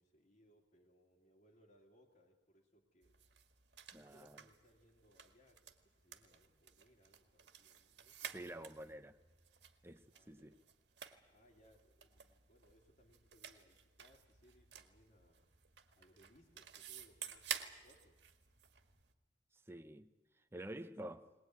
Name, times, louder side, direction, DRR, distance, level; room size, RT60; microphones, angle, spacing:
voice 1, 0.0-3.2 4.0-8.5 10.1-10.6 11.3-15.5 16.0-18.2, equal, 45° left, 2.6 m, -69 dB
sound 1, 3.0-19.1, right 8 dB, 60° right, 1.8 m, -52 dB
voice 2, 3.9-4.4 8.2-9.2 9.8-10.6 19.5-21.3, right 1 dB, 15° right, 0.7 m, -50 dB
20.5 x 20.0 x 9.3 m
head